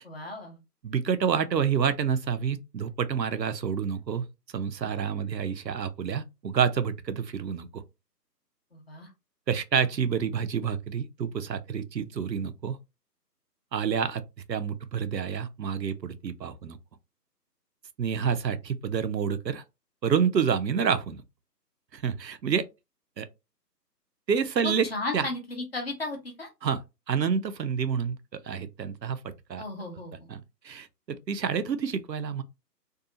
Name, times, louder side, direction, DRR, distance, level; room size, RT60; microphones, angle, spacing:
voice 1, 0.0-0.6 8.7-9.1 24.6-26.5 29.6-30.3, left 2 dB, 35° left, 0.8 m, -35 dB
voice 2, 0.8-4.2 4.5-7.8 9.5-12.8 13.7-14.2 14.5-16.8 18.0-19.6 20.0-21.2 21.9-22.6 23.2-23.3 24.3-24.9 25.1-25.3 26.6-26.8 27.1-28.2 28.5-29.2 29.5-29.6 30.3-32.4, right 7 dB, 85° right, 0.6 m, -28 dB
2.7 x 2.3 x 2.6 m
figure-of-eight pair, 150°, 50 cm